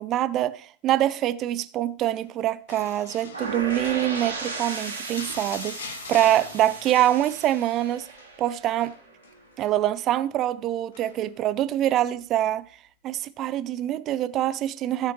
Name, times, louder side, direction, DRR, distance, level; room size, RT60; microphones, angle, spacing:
voice 1, 0.0-8.1 8.4-8.9 9.6-12.6 13.0-15.1, right 13 dB, 35° right, 0.5 m, -25 dB
sound 1, 2.7-7.7 7.9-8.3 8.8-9.8 10.9-11.4 11.9-12.0, left 5 dB, 60° left, 1.2 m, -42 dB
sound 2, 3.3-9.2, right 3 dB, 75° right, 2.6 m, -36 dB
15.5 x 6.6 x 3.2 m
figure-of-eight pair, 90°, 0 cm